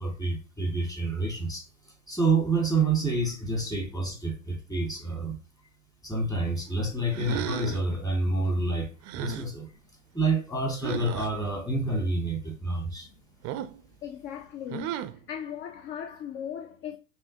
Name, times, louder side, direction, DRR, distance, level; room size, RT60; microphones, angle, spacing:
voice 1, 0.0-1.7 2.1-5.4 6.0-9.7 10.1-13.1, right 3 dB, 10° left, 1.6 m, -28 dB
sound 1, 7.1-7.9 9.0-9.5 10.8-11.3 13.4-13.8 14.7-15.2, right 12 dB, 40° right, 0.5 m, -34 dB
voice 2, 14.0-14.9 15.3-17.0, left 9 dB, 30° left, 0.4 m, -37 dB
5.5 x 2.6 x 2.6 m
hypercardioid pair, 90°, 39 cm